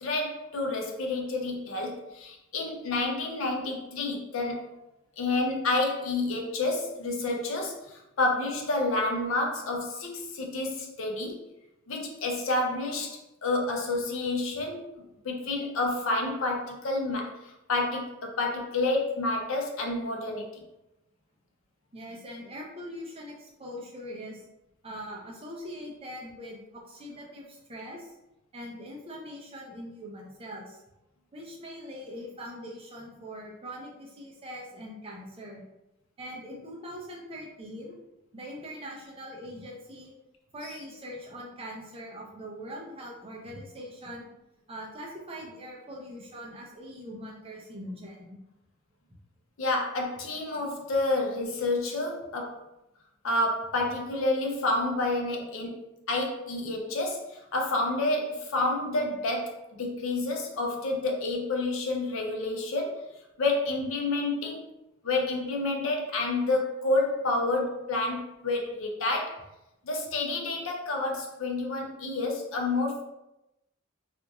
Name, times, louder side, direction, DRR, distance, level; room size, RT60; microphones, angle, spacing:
voice 1, 0.0-4.6 5.2-11.4 11.9-20.6 40.6-40.7 49.6-52.6 53.2-63.0 63.4-64.7 65.0-69.4 69.8-73.0, left 2 dB, 70° left, 1 dB, 0.5 m, -29 dB
voice 2, 21.9-24.4 24.8-28.1 28.5-30.8 31.3-35.6 36.2-38.0 38.3-40.1 40.5-44.3 44.7-48.4, equal, 30° right, -2 dB, 0.5 m, -42 dB
2.9 x 2.5 x 2.3 m, 0.91 s
head